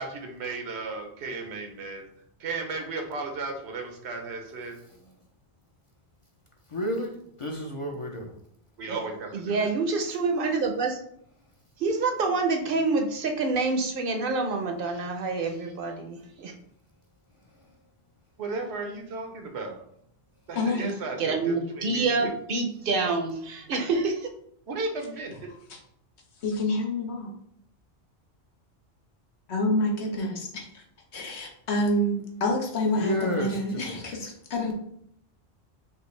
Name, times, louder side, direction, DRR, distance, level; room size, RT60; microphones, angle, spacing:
voice 1, 0.0-2.0 2.4-4.8 8.8-9.7 18.4-19.8 20.5-22.3 24.7-25.5, right 3 dB, 85° right, 3 dB, 1.1 m, -35 dB
voice 2, 6.7-8.3 33.0-34.2, equal, 40° left, 0 dB, 0.5 m, -32 dB
voice 3, 9.3-11.0 11.8-16.5 21.2-24.3, right 3 dB, 60° right, 4 dB, 0.8 m, -27 dB
voice 4, 20.5-20.9 25.7-25.8 26.4-27.3 29.5-30.8 31.1-34.7, left 1 dB, 85° left, 1 dB, 1.2 m, -28 dB
5.3 x 2.5 x 3.2 m, 0.71 s
omnidirectional pair, 1.1 m